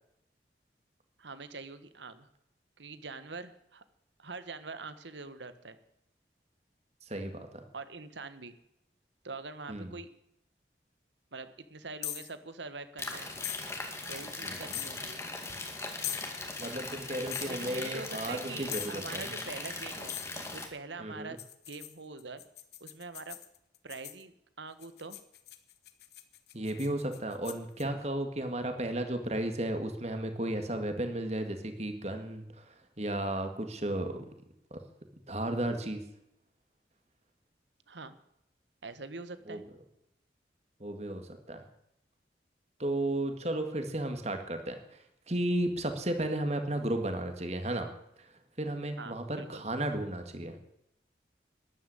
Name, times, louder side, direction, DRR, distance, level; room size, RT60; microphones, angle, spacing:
voice 1, 1.2-2.3 2.8-3.8 4.2-5.8 7.7-8.5 9.2-10.1 11.3-13.3 14.1-15.2 17.5-20.2 20.5-21.4 21.7-22.4 22.8-23.4 23.8-25.2 37.9-38.1 38.8-39.6 49.0-49.6, right 3 dB, 80° right, 12 dB, 1.4 m, -44 dB
voice 2, 7.1-7.6 9.7-10.0 14.4-14.8 16.6-19.3 21.0-21.4 26.5-34.2 34.7-34.8 35.3-36.0 39.5-39.6 40.8-41.6 42.8-50.6, right 1 dB, 35° right, 7 dB, 2.1 m, -34 dB
sound 1, 12.0-12.3 13.4-13.6 14.7-14.9 16.0-16.3 17.3-17.5 18.7-19.0 20.1-20.3 21.4-24.2 24.8-27.8, left 13 dB, 65° left, 1.3 m, -40 dB
sound 2, 13.0-20.7, left 2 dB, 15° left, 2.1 m, -39 dB
13.0 x 11.0 x 8.4 m, 0.80 s
head